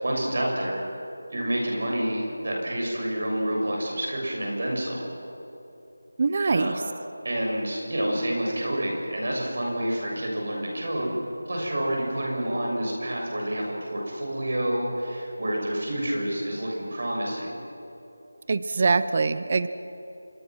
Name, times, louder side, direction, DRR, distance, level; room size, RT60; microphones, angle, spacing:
voice 1, 0.0-0.8 1.3-5.1 6.5-6.8 7.2-11.1 11.5-17.5, right 1 dB, 45° right, -1 dB, 7.0 m, -28 dB
voice 2, 6.2-6.7 18.5-19.7, right 4 dB, 25° right, 13 dB, 0.5 m, -23 dB
27.0 x 23.0 x 6.2 m, 3.0 s
figure-of-eight pair, 180°, 0 cm